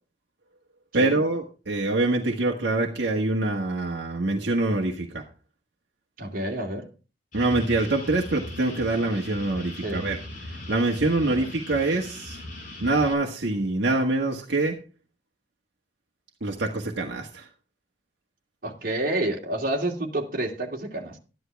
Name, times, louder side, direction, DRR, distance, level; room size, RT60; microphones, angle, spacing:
voice 1, 0.9-5.2 7.3-10.2 10.4-12.4 12.8-14.8 16.4-17.5, right 2 dB, 70° right, 1.6 m, -25 dB
voice 2, 6.2-6.9 9.8-10.1 11.3-11.5 18.6-21.2, right 1 dB, 55° right, 2.6 m, -29 dB
sound 1, 7.3-13.1, left 1 dB, 50° left, 4.7 m, -39 dB
13.0 x 11.0 x 3.5 m
head